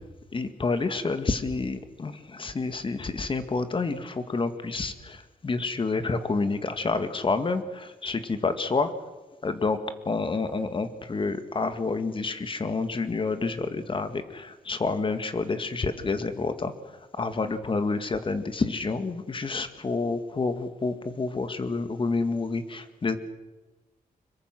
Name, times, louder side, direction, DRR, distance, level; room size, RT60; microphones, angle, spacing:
voice 1, 0.3-8.9 9.4-9.8 10.1-16.7 17.2-23.2, left 3 dB, 35° left, 9 dB, 2.1 m, -29 dB
25.5 x 22.5 x 6.2 m, 1.2 s
wide cardioid pair, 105°, 14 cm